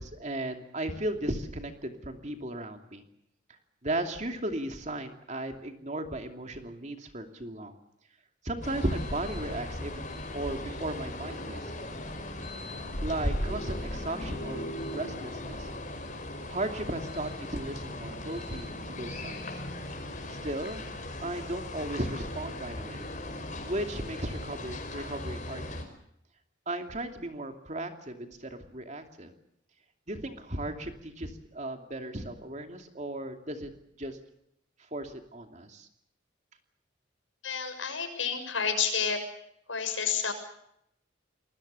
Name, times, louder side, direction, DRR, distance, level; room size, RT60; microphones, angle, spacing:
voice 1, 0.0-3.0 3.8-7.7 8.4-11.7 12.2-12.3 13.0-15.7 16.5-19.6 20.3-20.9 21.2-23.1 23.6-25.8 26.7-29.3 30.1-33.7 34.0-34.2 34.9-35.9, right 1 dB, 40° right, 5 dB, 2.7 m, -36 dB
sound 1, 8.6-25.8, left 1 dB, 40° left, 5.3 m, -37 dB
voice 2, 37.4-39.2 39.7-40.3, left 6 dB, 85° left, 6 dB, 6.6 m, -30 dB
27.5 x 21.0 x 6.9 m, 0.76 s
head